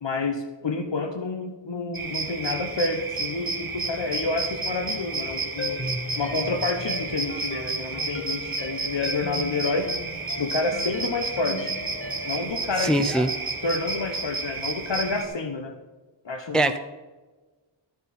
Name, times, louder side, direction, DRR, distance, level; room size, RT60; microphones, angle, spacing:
voice 1, 0.0-5.8 6.2-9.9 10.4-11.7 12.2-13.3 13.6-15.7 16.2-16.7, left 3 dB, 65° left, 6 dB, 1.1 m, -29 dB
sound 1, 1.9-15.2, right 3 dB, 45° right, 1.9 m, -31 dB
sound 2, 5.6-12.4, left 3 dB, 25° left, 0.9 m, -37 dB
voice 2, 12.8-13.3 16.5-16.8, right 2 dB, ahead, 8 dB, 0.6 m, -22 dB
13.0 x 9.4 x 4.3 m, 1.3 s
wide cardioid pair, 75°, 47 cm